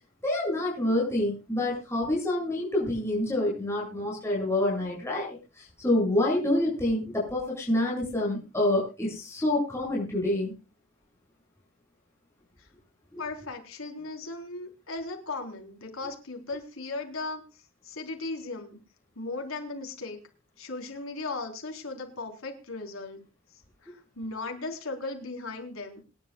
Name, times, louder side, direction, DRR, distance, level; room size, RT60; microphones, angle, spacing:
voice 1, 0.2-10.5 13.1-13.2, left 1 dB, 15° left, -4 dB, 7.7 m, -27 dB
voice 2, 13.2-17.4 17.8-18.8 19.2-20.2 20.6-23.2 23.8-26.0, left 3 dB, 80° left, 3 dB, 4.1 m, -37 dB
26.5 x 11.5 x 2.4 m, 0.31 s
head